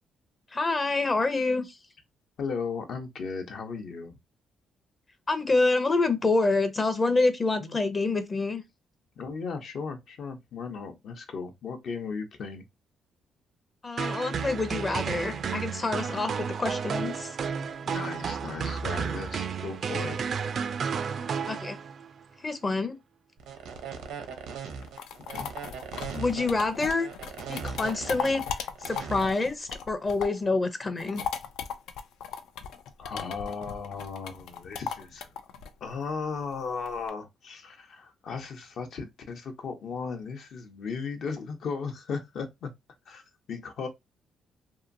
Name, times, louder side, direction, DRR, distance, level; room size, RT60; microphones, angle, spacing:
voice 1, 0.5-1.8 5.3-8.6 13.8-17.4 21.5-21.8 22.4-23.0 26.1-27.1 27.5-28.4 28.8-31.2, left 3 dB, 30° left, 0.6 m, -27 dB
voice 2, 2.4-4.1 7.6-7.8 9.2-12.6 17.8-20.2 25.3-25.5 33.0-35.3 35.8-42.7 43.1-43.9, left 5 dB, 65° left, 0.7 m, -36 dB
sound 1, 14.0-22.1, right 6 dB, 55° right, 0.3 m, -32 dB
sound 2, 23.4-29.2, right 6 dB, 90° right, 0.7 m, -39 dB
sound 3, 24.7-30.5 30.8-37.1, left 7 dB, 85° left, 0.4 m, -37 dB
2.8 x 2.5 x 2.5 m
cardioid pair, 90°, 0 cm